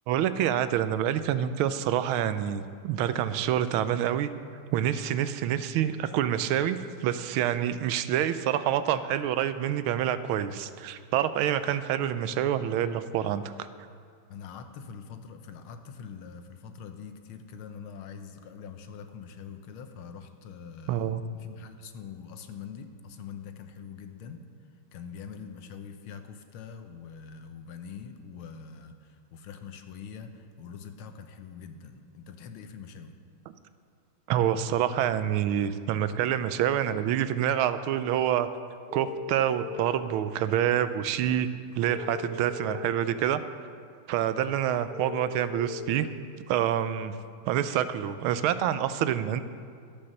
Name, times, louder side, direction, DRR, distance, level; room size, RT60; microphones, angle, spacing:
voice 1, 0.1-4.3 4.7-13.4 20.9-21.2 34.3-38.5 38.9-41.5 41.7-43.4 44.1-46.1 46.5-47.2 47.5-49.4, right 10 dB, 80° right, 12 dB, 1.4 m, -27 dB
voice 2, 14.3-24.4 24.9-33.1, left 6 dB, 80° left, 7 dB, 1.6 m, -44 dB
sound 1, 36.8-36.9 38.9-40.1 41.9-42.9 44.9-45.9, left 6 dB, 25° right, 1.4 m, -39 dB
12.5 x 8.5 x 6.4 m, 2.2 s
omnidirectional pair, 2.3 m